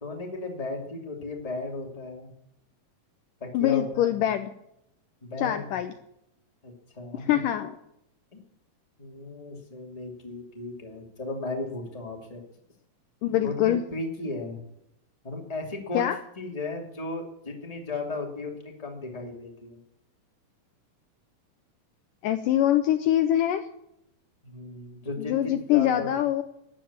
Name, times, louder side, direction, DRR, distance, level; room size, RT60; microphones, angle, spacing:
voice 1, 0.0-2.3 3.4-4.3 5.2-5.6 6.6-7.4 8.3-8.4 9.0-12.4 13.4-14.6 15.2-16.1 16.4-19.8 24.4-26.1, left 3 dB, 10° left, 1 dB, 2.3 m, -35 dB
voice 2, 3.5-4.5 5.4-5.9 7.1-7.7 13.2-13.8 15.9-16.2 22.2-23.6 25.2-26.4, left 12 dB, 75° left, 8 dB, 2.2 m, -24 dB
13.5 x 10.0 x 8.7 m, 0.78 s
omnidirectional pair, 4.3 m